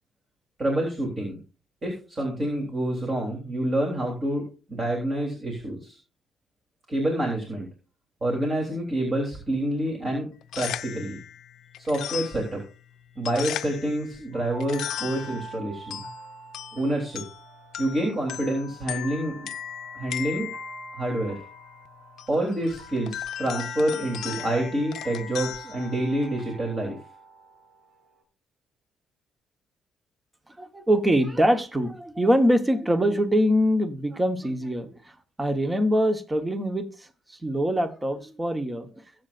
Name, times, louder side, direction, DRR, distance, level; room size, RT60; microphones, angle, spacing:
voice 1, 0.6-1.4 1.8-6.0 6.9-7.7 8.2-10.3 10.6-11.2 11.8-12.6 13.2-16.0 16.7-17.2 17.8-19.5 19.9-20.5 20.9-21.4 22.3-27.0, right 1 dB, 30° right, 3.5 m, -27 dB
sound 1, 10.3-26.6, left 11 dB, 75° left, 0.6 m, -38 dB
sound 2, 14.3-28.2, right 2 dB, 65° right, 4.9 m, -46 dB
voice 2, 30.6-34.9 35.4-36.9 37.4-38.9, equal, 15° right, 1.3 m, -23 dB
22.5 x 7.9 x 2.6 m
cardioid pair, 135°, 0 cm